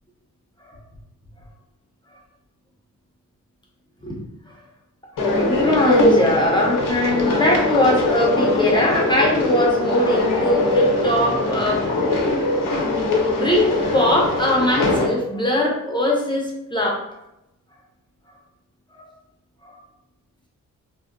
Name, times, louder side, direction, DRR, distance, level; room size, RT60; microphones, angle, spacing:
sound 1, 5.2-15.1, left 2 dB, 90° left, 0.6 m, -21 dB
voice 1, 5.2-11.8 12.8-17.0 18.9-19.1 19.6-19.7, left 1 dB, 15° left, -3 dB, 0.6 m, -21 dB
2.7 x 2.1 x 2.4 m, 0.85 s
wide cardioid pair, 110°, 32 cm